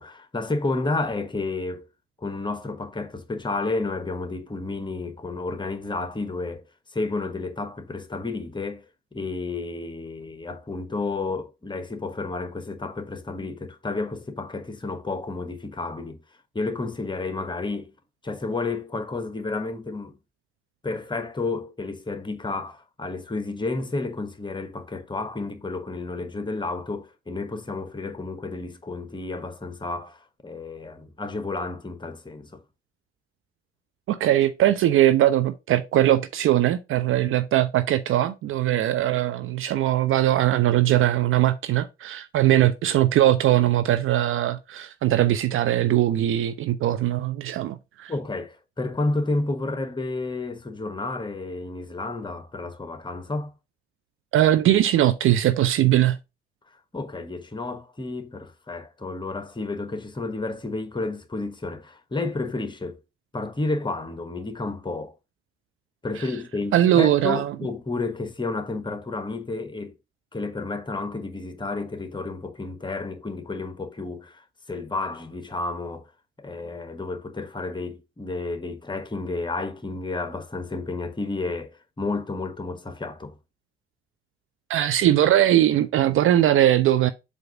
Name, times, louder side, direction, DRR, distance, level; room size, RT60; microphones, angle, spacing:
voice 1, 0.0-1.9 2.2-8.9 9.1-16.2 16.5-17.9 18.2-20.2 20.8-32.6 48.1-53.5 56.9-63.0 63.3-65.1 66.0-69.9 70.3-76.1 76.4-83.4, left 3 dB, 15° left, 1.2 m, -31 dB
voice 2, 34.1-48.1 54.3-56.2 66.7-67.5 84.7-87.1, right 13 dB, 40° right, 0.5 m, -20 dB
7.7 x 2.6 x 5.7 m
figure-of-eight pair, 50°, 31 cm